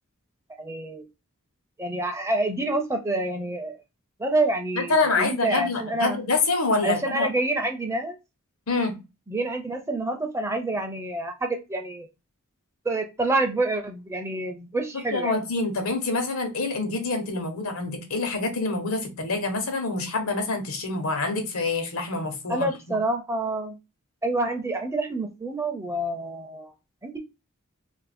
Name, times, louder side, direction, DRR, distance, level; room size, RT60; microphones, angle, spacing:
voice 1, 0.6-1.1 1.8-3.8 4.2-6.2 6.8-8.2 9.3-12.1 12.8-15.4 22.5-23.8 24.2-26.7 27.0-27.2, right 2 dB, 15° right, 5 dB, 0.4 m, -27 dB
voice 2, 4.8-7.3 8.7-9.0 15.1-23.0, left 3 dB, 85° left, 5 dB, 1.0 m, -26 dB
2.5 x 2.5 x 4.1 m, 0.26 s
head